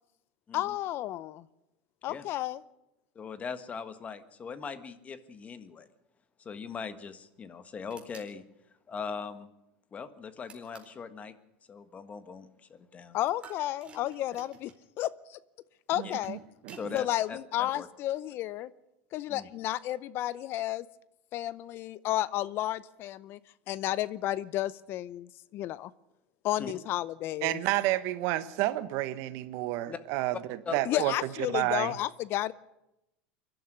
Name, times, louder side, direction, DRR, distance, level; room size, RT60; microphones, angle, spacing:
voice 1, 0.5-1.4 2.0-2.6 13.1-14.7 15.0-15.4 15.9-16.4 16.9-18.7 19.1-20.9 21.3-23.4 23.7-25.9 26.4-27.6 30.9-32.5, left 14 dB, 50° left, 19 dB, 0.7 m, -32 dB
voice 2, 3.1-5.9 6.4-8.4 8.9-9.5 9.9-11.3 11.7-13.2 16.0-16.2 16.8-17.9 19.3-19.5 26.6-26.7 29.9-30.0 30.6-31.0, left 5 dB, 25° left, 12 dB, 1.5 m, -40 dB
sound 1, 7.9-8.3 10.5-11.0 13.4-14.8 15.9-16.9, right 4 dB, 20° right, 4.2 m, -52 dB
voice 3, 16.0-16.4 16.6-17.0 27.4-30.4 30.7-31.9, right 16 dB, 65° right, 13 dB, 1.2 m, -30 dB
23.0 x 12.0 x 10.0 m, 0.91 s
supercardioid pair, 115°, 5 cm